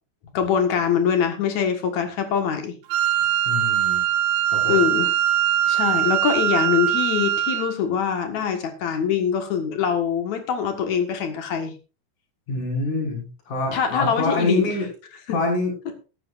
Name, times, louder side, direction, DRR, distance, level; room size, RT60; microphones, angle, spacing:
voice 1, 0.3-2.7 4.7-5.1 5.7-11.7 13.7-14.7 15.3-15.4, left 7 dB, 65° left, 6 dB, 1.8 m, -23 dB
Wind instrument woodwind instrument, 2.9-7.7, right 11 dB, 85° right, 3.6 m, -22 dB
voice 2, 3.5-4.0 4.5-4.8 12.5-14.9 15.3-15.7, left 3 dB, 40° left, 0 dB, 7.0 m, -25 dB
16.0 x 13.0 x 2.5 m, 0.33 s
omnidirectional pair, 5.7 m